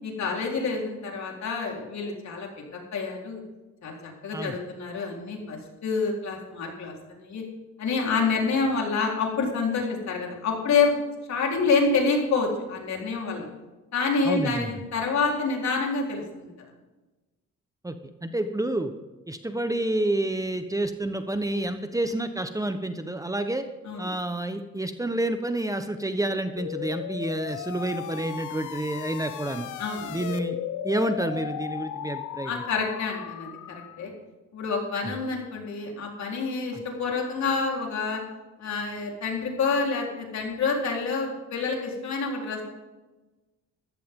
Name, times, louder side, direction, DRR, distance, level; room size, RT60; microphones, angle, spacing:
voice 1, 0.0-2.5 2.9-3.4 3.8-7.4 7.8-11.0 11.3-13.5 13.9-16.5 23.8-24.1 29.8-30.2 32.4-34.1 34.5-38.2 38.6-42.6, left 4 dB, 65° left, 0 dB, 4.1 m, -27 dB
voice 2, 14.2-14.7 17.8-18.0 18.2-18.9 19.3-23.6 24.0-29.7 30.1-30.6 30.8-32.6 36.7-36.8, right 1 dB, 10° right, 8 dB, 1.1 m, -29 dB
sound 1, 26.6-34.0, left 11 dB, 85° left, 0.9 m, -36 dB
14.5 x 13.5 x 3.8 m, 1.1 s
cardioid pair, 90°, 30 cm